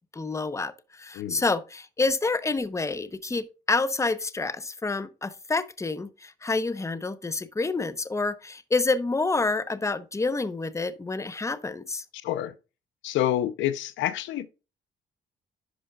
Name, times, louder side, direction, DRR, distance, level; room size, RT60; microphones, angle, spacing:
voice 1, 0.1-12.0, left 3 dB, 15° left, 0.7 m, -28 dB
voice 2, 12.2-12.5 13.0-14.5, left 12 dB, 80° left, 0.6 m, -28 dB
11.0 x 5.0 x 2.3 m
cardioid pair, 85°, 19 cm